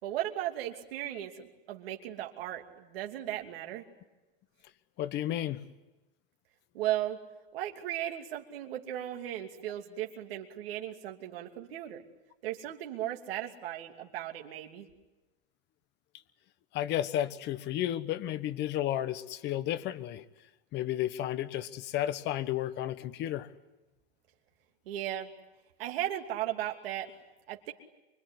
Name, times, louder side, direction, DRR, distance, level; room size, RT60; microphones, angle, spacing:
voice 1, 0.0-3.8 6.7-7.2 7.5-12.0 12.4-14.9 24.9-25.3 25.8-27.1 27.5-27.7, right 12 dB, 80° right, 2 dB, 2.8 m, -36 dB
voice 2, 5.0-5.7 16.7-20.2 20.7-23.5, left 12 dB, 35° left, 14 dB, 1.2 m, -32 dB
25.0 x 24.0 x 9.7 m, 1.1 s
supercardioid pair, 145°, 29 cm